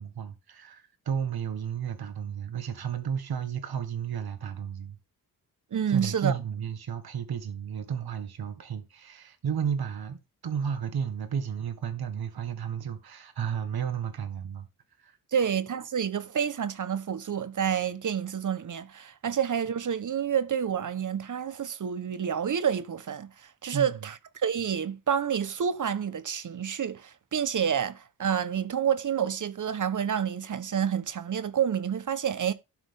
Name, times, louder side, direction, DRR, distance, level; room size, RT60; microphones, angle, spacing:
voice 1, 0.0-5.0 5.9-14.7 15.0-15.2 23.7-24.1, right 7 dB, 85° right, 1.7 m, -33 dB
voice 2, 5.7-6.3 15.3-23.3 23.6-24.2 24.4-32.5, right 8 dB, 55° right, 1.1 m, -28 dB
12.5 x 6.0 x 3.6 m
wide cardioid pair, 120°, 36 cm